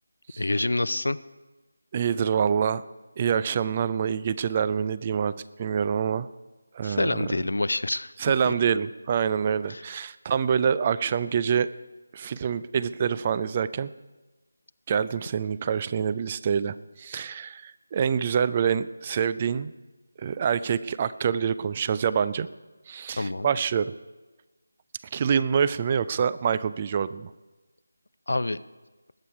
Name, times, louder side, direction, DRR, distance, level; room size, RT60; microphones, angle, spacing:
voice 1, 0.4-1.2 6.8-8.1 8.5-8.6 9.7-9.8 23.2-23.5 28.3-28.6, left 2 dB, 65° left, 16 dB, 0.5 m, -27 dB
voice 2, 1.9-2.8 3.2-5.3 5.6-6.3 6.7-7.3 8.2-11.7 12.1-13.9 14.9-19.7 20.2-22.5 22.9-23.9 25.1-27.3, right 7 dB, 25° right, 16 dB, 0.3 m, -26 dB
20.5 x 8.4 x 4.8 m, 1.2 s
figure-of-eight pair, 160°, 0 cm